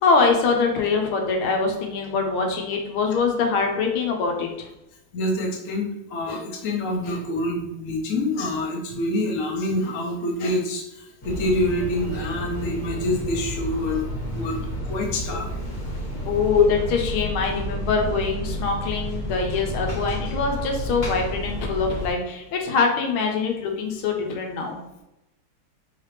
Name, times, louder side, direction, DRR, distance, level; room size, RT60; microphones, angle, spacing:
voice 1, 0.0-4.5 16.3-24.8, left 4 dB, 80° left, 2 dB, 1.5 m, -24 dB
voice 2, 5.1-14.0 14.3-15.5 16.5-16.6, left 2 dB, 60° left, -1 dB, 0.8 m, -26 dB
sound 1, 11.2-22.1, equal, 30° left, 1.5 m, -31 dB
3.8 x 3.2 x 3.2 m, 0.90 s
omnidirectional pair, 2.4 m